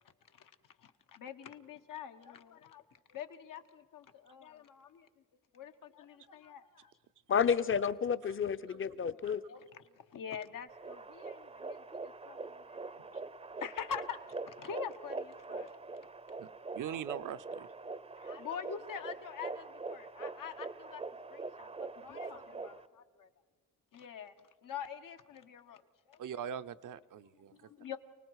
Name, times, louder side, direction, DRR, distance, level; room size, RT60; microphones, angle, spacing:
voice 1, 0.8-2.8 3.1-5.1 5.5-6.9 8.7-9.2 9.5-13.2 13.6-14.2 14.4-15.7 18.2-21.0 21.3-21.7 22.0-23.3 23.9-24.3 24.6-25.8 26.1-26.2 27.6-28.0, left 8 dB, 90° left, 7 dB, 1.1 m, -45 dB
voice 2, 7.3-9.4, left 7 dB, 40° left, 15 dB, 0.6 m, -30 dB
sound 1, 10.7-22.9, right 3 dB, 20° right, 0.5 m, -43 dB
voice 3, 16.4-17.7 26.2-27.6, right 9 dB, 75° right, 12 dB, 0.6 m, -42 dB
29.0 x 19.0 x 4.7 m, 1.5 s
wide cardioid pair, 135°, 32 cm